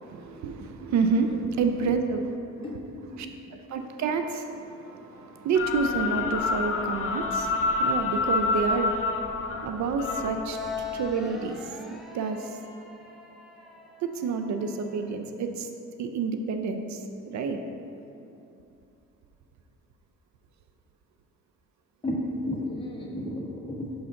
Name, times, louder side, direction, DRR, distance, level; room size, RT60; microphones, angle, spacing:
voice 1, 0.0-2.4 2.6-10.6 10.9-12.6 14.0-15.7 16.0-17.6, right 4 dB, 70° right, 6 dB, 0.5 m, -29 dB
voice 2, 0.5-0.8 2.6-3.5 22.0-23.9, left 1 dB, 15° left, -3 dB, 1.1 m, -34 dB
sound 1, 4.8-15.2, left 4 dB, ahead, 0.7 m, -44 dB
sound 2, 5.5-11.1, left 4 dB, 45° left, 0.6 m, -28 dB
5.5 x 3.8 x 5.6 m, 2.8 s
cardioid pair, 90°, 30 cm